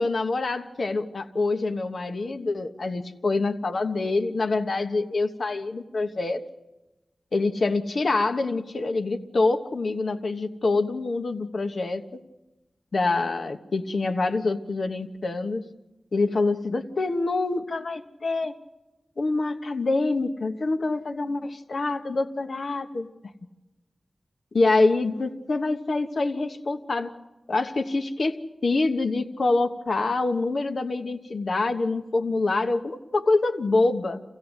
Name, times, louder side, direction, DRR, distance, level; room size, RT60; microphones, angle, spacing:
voice 1, 0.0-6.4 7.3-12.2 12.9-15.6 16.1-18.6 19.2-23.1 24.5-27.1 27.5-34.2, left 3 dB, 70° left, 7 dB, 1.2 m, -26 dB
26.0 x 16.5 x 8.1 m, 1.1 s
cardioid pair, 50°, 0 cm